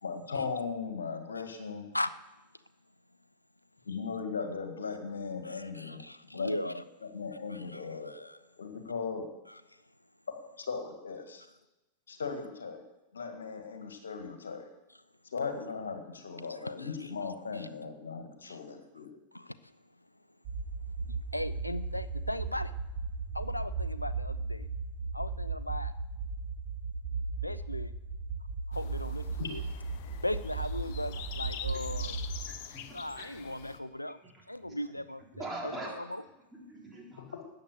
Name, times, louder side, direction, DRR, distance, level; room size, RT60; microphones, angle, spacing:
voice 1, 0.0-1.9 3.9-6.0 6.3-6.5 7.1-8.3 8.6-9.3 10.3-11.4 12.1-12.8 13.1-14.7 15.3-19.2 29.4-29.5 37.2-37.4, left 5 dB, 70° left, 6 dB, 1.8 m, -38 dB
voice 2, 5.4-6.8 7.5-8.4 9.5-9.6 16.5-17.1 17.5-17.7 18.4-18.6 19.3-19.7 21.0-22.7 23.3-24.7 25.1-25.9 27.4-27.9 28.7-29.6 30.2-32.2 32.9-34.2 34.5-36.2, left 1 dB, 85° left, 15 dB, 0.4 m, -38 dB
sound 1, 20.4-32.4, right 4 dB, 45° right, 5.7 m, -36 dB
sound 2, 28.7-33.8, left 9 dB, 50° left, 1.0 m, -45 dB
voice 3, 32.5-33.3 35.4-35.9 36.5-37.2, right 2 dB, 10° right, -2 dB, 3.8 m, -42 dB
13.0 x 9.2 x 6.8 m, 1.0 s
figure-of-eight pair, 90°, 0 cm